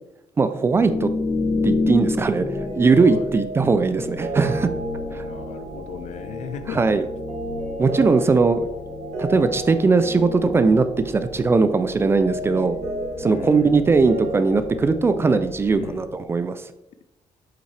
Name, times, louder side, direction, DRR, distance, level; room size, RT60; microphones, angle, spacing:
voice 1, 0.4-1.1 1.6-2.5 2.8-4.7 5.1-5.3 6.7-7.1 7.8-8.7 9.2-12.8 13.2-16.6, right 4 dB, 20° right, 10 dB, 0.3 m, -19 dB
sound 1, 0.6-16.4, left 2 dB, 40° left, 1.2 m, -31 dB
sound 2, 2.5-15.5, right 2 dB, 70° right, 1.3 m, -35 dB
voice 2, 5.1-6.8 13.2-13.8 15.8-16.1, left 8 dB, 75° left, 11 dB, 0.6 m, -36 dB
7.5 x 5.4 x 3.3 m, 0.90 s
cardioid pair, 175°, 12 cm